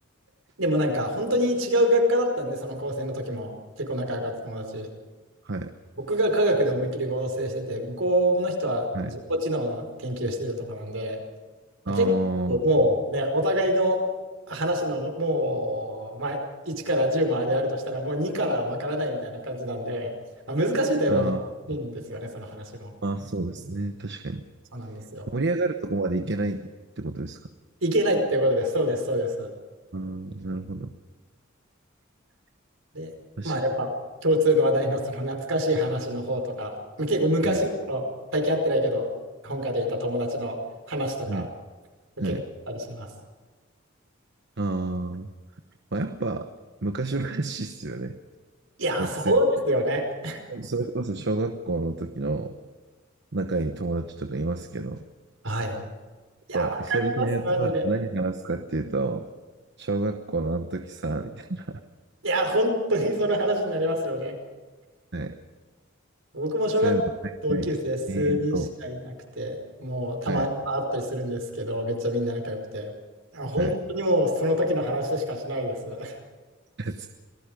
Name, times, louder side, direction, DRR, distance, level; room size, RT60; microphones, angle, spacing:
voice 1, 0.6-3.5 3.8-4.9 6.1-11.2 11.9-12.1 12.5-14.0 14.5-16.4 16.7-20.1 20.5-21.3 21.7-22.9 24.7-25.3 27.8-29.5 32.9-33.1 33.4-33.9 34.2-38.0 38.3-39.1 39.4-40.6 40.9-41.5 42.2-42.4 42.7-43.1 48.8-50.4 55.4-55.9 56.5-57.9 62.2-64.3 66.3-67.0 67.4-72.9 73.3-76.1, equal, 75° right, 3 dB, 5.2 m, -26 dB
voice 2, 11.8-12.6 21.1-21.5 23.0-24.4 25.3-26.6 27.0-27.4 29.9-30.9 33.4-33.6 37.4-37.6 41.3-41.5 42.2-42.4 44.6-45.3 45.9-46.5 46.8-48.2 49.0-49.4 50.5-52.6 53.3-55.0 56.5-59.2 59.8-61.8 65.1-65.4 66.8-67.7 68.1-68.7 70.3-70.5 73.6-73.8 76.8-77.1, right 2 dB, 60° right, 7 dB, 1.1 m, -29 dB
27.5 x 19.0 x 5.2 m, 1.4 s
head